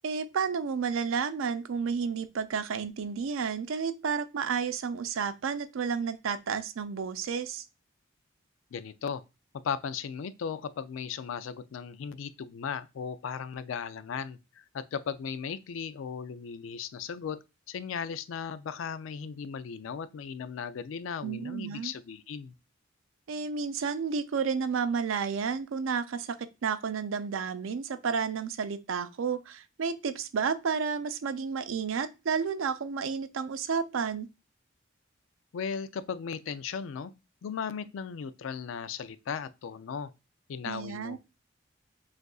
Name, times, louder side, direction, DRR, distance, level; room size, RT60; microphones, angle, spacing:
voice 1, 0.0-7.6 21.2-21.9 23.3-34.3 40.6-41.2, right 6 dB, 85° right, 0.4 m, -31 dB
voice 2, 8.7-9.2 9.6-17.4 17.7-22.5 35.5-37.1 37.4-40.1 40.5-41.2, left 6 dB, 75° left, 0.4 m, -36 dB
6.4 x 2.5 x 2.3 m
head